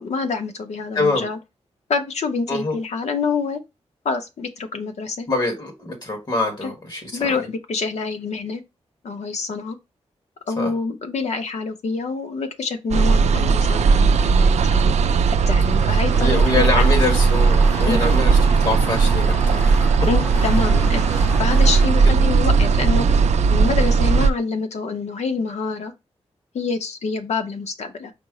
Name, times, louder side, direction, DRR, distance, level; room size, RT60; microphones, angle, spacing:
voice 1, 0.0-1.4 1.9-3.6 4.0-5.3 6.6-6.7 7.1-8.6 9.0-9.8 10.5-14.9 15.5-16.8 17.9-18.0 20.0-23.2 23.5-25.9 26.5-28.1, left 4 dB, 75° left, 0.8 m, -26 dB
voice 2, 5.3-7.3 10.6-10.7 15.9-19.9, left 2 dB, 40° left, 1.4 m, -24 dB
sound 1, 12.9-24.3, right 5 dB, 80° right, 0.4 m, -17 dB
sound 2, 16.1-21.9, left 1 dB, 15° left, 0.9 m, -32 dB
5.2 x 2.1 x 4.7 m
wide cardioid pair, 135°, 11 cm